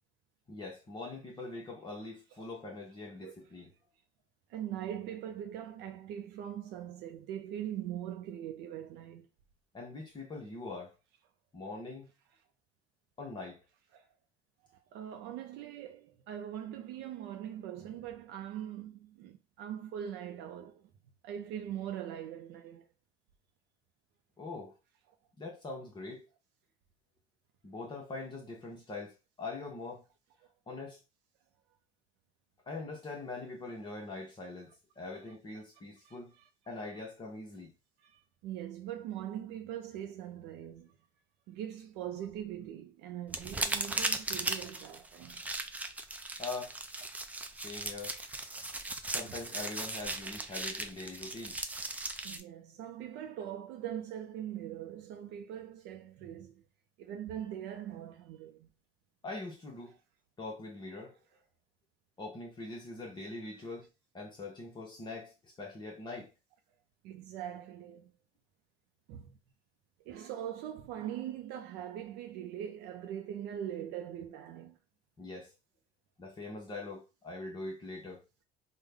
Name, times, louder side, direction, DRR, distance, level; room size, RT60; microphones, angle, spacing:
voice 1, 0.5-3.7 9.7-10.9 11.5-12.1 13.2-13.6 24.4-24.8 25.4-26.3 27.6-30.0 30.7-31.0 32.7-36.3 36.7-37.7 46.4-46.8 47.6-48.2 49.1-51.6 59.2-60.0 60.4-61.2 62.2-63.9 64.1-66.3 75.2-75.5 76.2-78.2, left 3 dB, 25° left, 0.8 m, -43 dB
voice 2, 4.5-9.3 13.9-14.1 14.7-20.8 21.2-22.9 36.0-36.5 38.0-41.0 41.5-45.4 49.2-49.4 52.2-56.6 57.0-58.7 63.6-63.7 67.0-68.1 69.1-69.4 70.1-74.8, right 10 dB, 70° right, 0.5 m, -42 dB
sound 1, 43.3-52.4, right 2 dB, 10° right, 0.4 m, -37 dB
3.6 x 2.2 x 3.3 m
cardioid pair, 130°, 18 cm